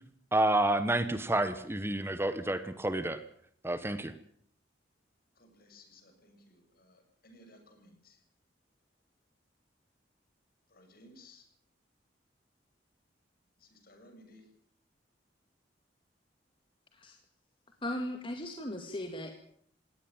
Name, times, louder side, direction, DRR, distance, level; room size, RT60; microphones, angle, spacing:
voice 1, 0.3-3.2 3.6-4.1, right 1 dB, 15° right, 11 dB, 1.2 m, -29 dB
voice 2, 5.4-8.2 10.7-11.5 13.6-14.5, left 1 dB, 55° left, 5 dB, 7.2 m, -58 dB
voice 3, 17.8-19.3, left 1 dB, 30° left, 4 dB, 2.2 m, -37 dB
20.0 x 17.5 x 9.0 m, 0.64 s
head